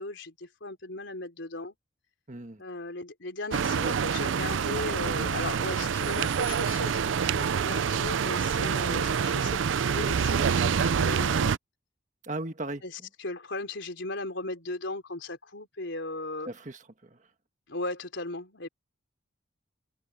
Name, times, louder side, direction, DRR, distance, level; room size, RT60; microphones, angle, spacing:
voice 1, 0.0-1.8 2.6-9.6 9.9-11.5 12.8-12.9 13.2-16.5 17.7-18.7, left 2 dB, 70° left, 3.7 m, -37 dB
voice 2, 2.3-2.6 12.2-13.1 16.5-17.3, right 2 dB, 40° right, 1.5 m, -38 dB
sound 1, 3.5-11.6, right 6 dB, 75° right, 0.4 m, -27 dB
head